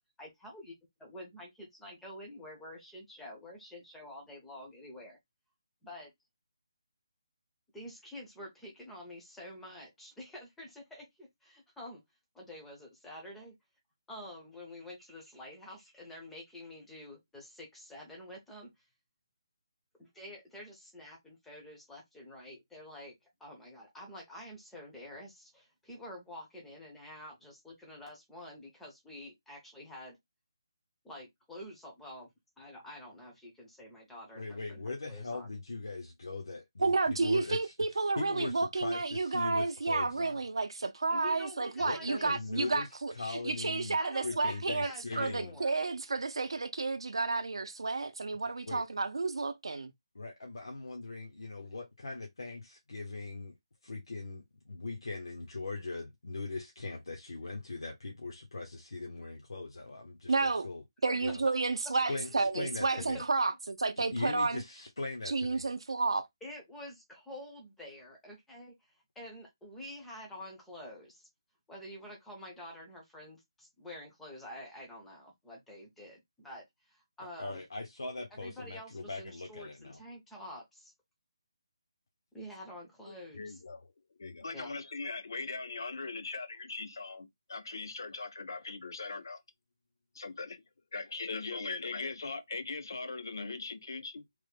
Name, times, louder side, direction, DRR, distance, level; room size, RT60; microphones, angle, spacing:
voice 1, 0.2-0.7 1.0-5.2 5.8-6.1 7.7-12.0 12.3-13.6 14.1-18.7 20.0-30.2 31.0-32.3 32.6-35.5 41.1-42.8 44.0-45.7 61.1-61.2 62.3-62.5 62.9-63.3 66.4-68.7 69.2-71.3 71.7-77.6 78.4-80.9 82.3-83.6 84.5-84.7, left 1 dB, ahead, 0.5 m, -48 dB
voice 2, 34.3-37.7 38.2-40.4 41.8-42.9 43.1-44.0 44.2-45.6 48.7-48.9 50.1-53.5 53.8-60.8 61.2-61.5 61.9-63.2 64.1-65.6 77.4-80.0, left 3 dB, 75° left, 0.8 m, -40 dB
voice 3, 36.8-49.9 60.3-60.7 61.0-64.6 65.3-66.3, right 3 dB, 80° right, 0.5 m, -31 dB
voice 4, 83.1-83.9 84.2-89.4 90.1-90.6 90.9-94.3, left 3 dB, 50° left, 0.5 m, -40 dB
3.2 x 2.1 x 3.2 m
hypercardioid pair, 180°, 3 cm